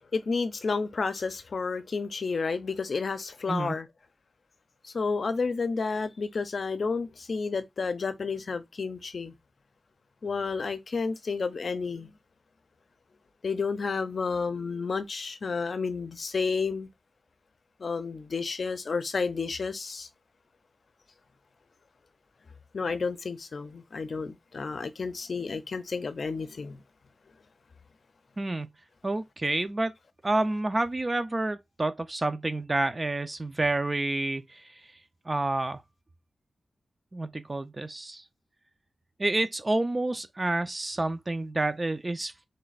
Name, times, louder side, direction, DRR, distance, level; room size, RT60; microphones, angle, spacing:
voice 1, 0.1-3.9 4.8-9.3 10.2-12.1 13.4-16.9 17.8-20.1 22.7-26.8, left 4 dB, 60° left, 0.6 m, -31 dB
voice 2, 28.4-28.7 29.0-29.9 30.2-34.8 35.3-35.8 37.1-38.2 39.2-42.3, right 2 dB, 30° right, 0.5 m, -29 dB
3.3 x 2.4 x 4.0 m
wide cardioid pair, 100°, 0 cm